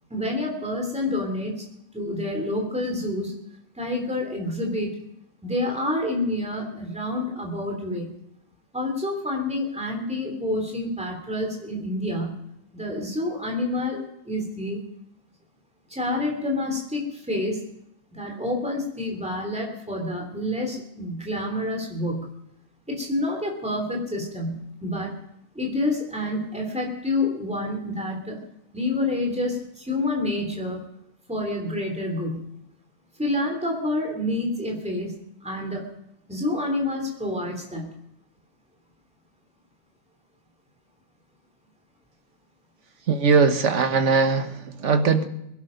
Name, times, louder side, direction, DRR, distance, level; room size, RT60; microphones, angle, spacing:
voice 1, 0.1-1.7 1.9-3.3 3.8-5.0 5.4-8.1 8.7-12.4 12.7-14.8 15.9-17.7 18.1-22.3 22.9-25.1 25.5-28.4 28.7-30.8 31.3-32.5 33.2-35.1 35.4-35.9 36.3-37.9, left 1 dB, 5° right, 1 dB, 3.2 m, -28 dB
voice 2, 43.1-45.3, right 5 dB, 60° right, 9 dB, 1.5 m, -20 dB
21.5 x 11.5 x 5.2 m, 0.80 s
omnidirectional pair, 1.5 m